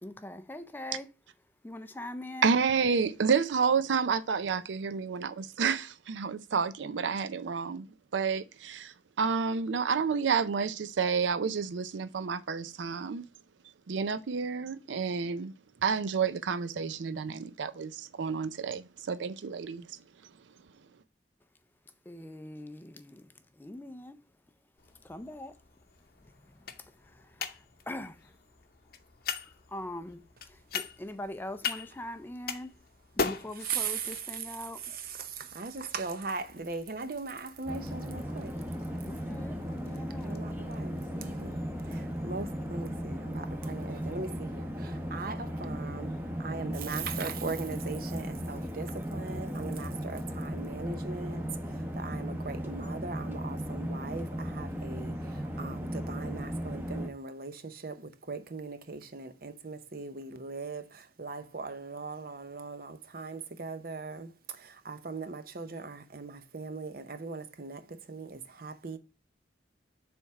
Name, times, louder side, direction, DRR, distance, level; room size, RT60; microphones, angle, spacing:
voice 1, 0.0-1.1 1.6-2.5 22.1-24.2 25.0-25.6 26.5-27.6 27.9-28.3 29.5-32.7 33.2-34.9 39.0-40.4, left 1 dB, 10° left, 0.4 m, -42 dB
voice 2, 2.4-7.9 8.1-13.2 13.9-15.5 15.8-20.0, right 5 dB, 90° right, 0.5 m, -30 dB
sound 1, 24.8-42.7, left 5 dB, 55° left, 0.7 m, -42 dB
voice 3, 33.6-34.1 35.2-38.5 40.2-41.6 41.9-51.4 52.0-55.2 55.6-64.3 64.6-67.8 68.1-69.0, right 4 dB, 50° right, 0.7 m, -39 dB
sound 2, 37.7-57.1, equal, 10° right, 0.9 m, -36 dB
7.0 x 3.5 x 4.6 m
head